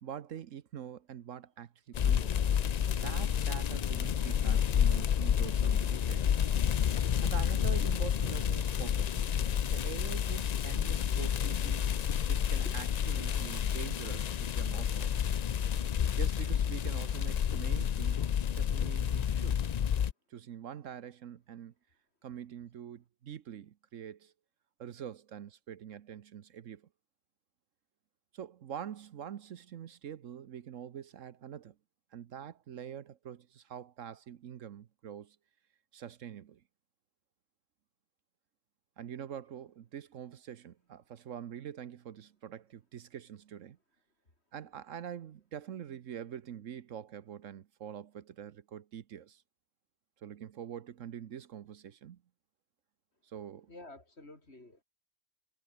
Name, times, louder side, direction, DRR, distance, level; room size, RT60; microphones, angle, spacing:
voice 1, 0.0-2.4 2.9-6.4 7.2-9.2 9.7-11.9 12.3-15.1 16.1-19.6 20.3-21.7 22.2-24.3 24.8-26.9 28.3-31.7 32.1-35.4 35.9-36.6 39.0-43.8 44.5-49.4 50.2-52.2 53.2-53.7, right 9 dB, 70° right, 1.2 m, -45 dB
sound 1, 1.9-20.1, left 8 dB, 75° left, 0.3 m, -30 dB
voice 2, 53.7-54.8, left 2 dB, 50° left, 4.8 m, -51 dB
omnidirectional pair, 1.4 m